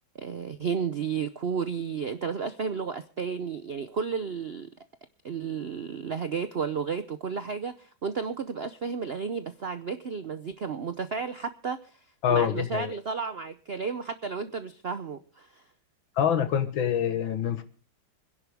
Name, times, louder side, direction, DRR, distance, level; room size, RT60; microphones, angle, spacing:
voice 1, 0.1-4.7 5.2-12.0 12.3-15.6, right 6 dB, 65° right, 11 dB, 0.6 m, -32 dB
voice 2, 12.2-12.9 16.2-17.6, left 8 dB, 85° left, 10 dB, 2.1 m, -25 dB
26.0 x 10.5 x 3.5 m, 0.40 s
omnidirectional pair, 2.1 m